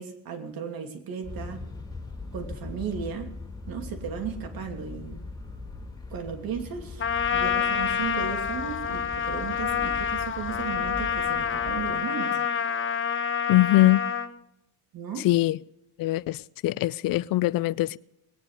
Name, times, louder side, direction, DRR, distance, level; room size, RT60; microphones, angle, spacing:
voice 1, 0.0-1.6 2.3-3.3 3.7-5.2 6.1-7.0 7.3-12.4 14.9-15.3, right 6 dB, 65° right, 2.8 m, -35 dB
sound 1, 1.2-11.9, left 3 dB, 10° left, 4.0 m, -40 dB
Trumpet, 7.0-14.3, left 7 dB, 30° left, 1.3 m, -27 dB
voice 2, 13.5-14.0 15.2-15.6 16.0-18.0, left 17 dB, 60° left, 0.5 m, -22 dB
20.5 x 10.0 x 5.0 m
cardioid pair, 100°, 38 cm